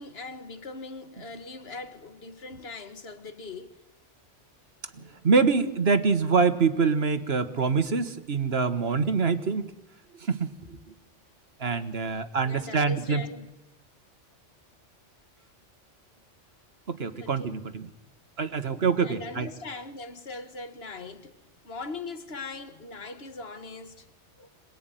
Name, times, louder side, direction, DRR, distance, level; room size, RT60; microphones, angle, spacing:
voice 1, 0.0-3.8 5.0-5.1 11.7-11.8 12.4-13.5 17.2-17.6 18.7-24.1 24.4-24.5, left 3 dB, 55° left, 1.9 m, -41 dB
voice 2, 5.0-9.7 10.2-10.8 11.6-13.2 16.9-17.9 18.4-19.5, right 5 dB, 55° right, 1.6 m, -25 dB
26.0 x 20.0 x 9.2 m
omnidirectional pair, 1.2 m